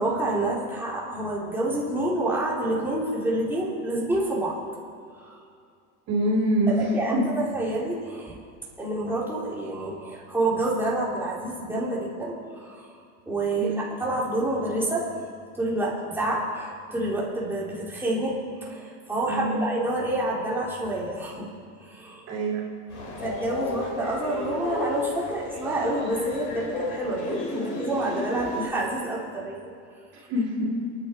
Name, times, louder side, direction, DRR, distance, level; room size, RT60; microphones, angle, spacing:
voice 1, 0.0-4.6 5.1-5.4 6.7-8.4 8.8-12.9 13.3-15.1 15.5-21.5 21.8-22.2 23.2-29.7 30.2-30.3, right 2 dB, 5° right, -6 dB, 4.1 m, -28 dB
voice 2, 6.1-7.3 13.6-13.8 19.3-19.7 22.3-22.6 30.3-30.9, equal, 40° right, -2 dB, 3.1 m, -25 dB
Train, 22.9-28.7, left 3 dB, 40° left, 5.1 m, -32 dB
27.5 x 10.0 x 4.8 m, 2.3 s
supercardioid pair, 125°, 40 cm